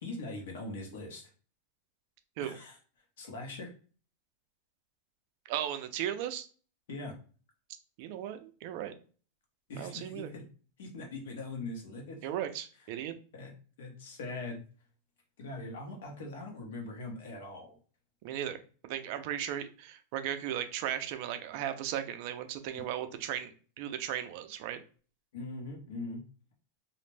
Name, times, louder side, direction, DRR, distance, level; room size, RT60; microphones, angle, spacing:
voice 1, 0.0-1.3 2.4-2.8 3.2-3.7 6.9-7.1 9.7-10.4 10.8-12.2 13.3-13.5 13.8-14.6 15.4-17.8 22.7-22.8 25.3-26.2, left 2 dB, 75° left, 2 dB, 0.9 m, -41 dB
voice 2, 5.5-6.5 8.0-8.9 9.8-10.3 12.2-13.1 18.2-24.8, right 11 dB, 45° right, 9 dB, 0.3 m, -36 dB
2.4 x 2.1 x 3.1 m, 0.39 s
supercardioid pair, 170°, 0 cm